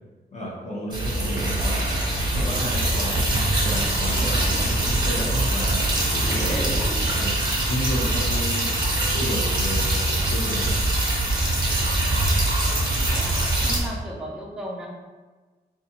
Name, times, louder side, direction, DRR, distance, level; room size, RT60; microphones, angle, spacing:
voice 1, 0.3-1.9 2.3-3.2 3.6-5.9 6.3-7.3 7.7-8.8 9.1-10.7, left 1 dB, 40° left, -5 dB, 1.0 m, -32 dB
sound 1, 0.9-13.8, right 1 dB, 25° right, 0.9 m, -23 dB
voice 2, 12.7-14.9, right 1 dB, 5° right, -4 dB, 0.5 m, -36 dB
4.0 x 2.5 x 2.9 m, 1.3 s
wide cardioid pair, 150°, 18 cm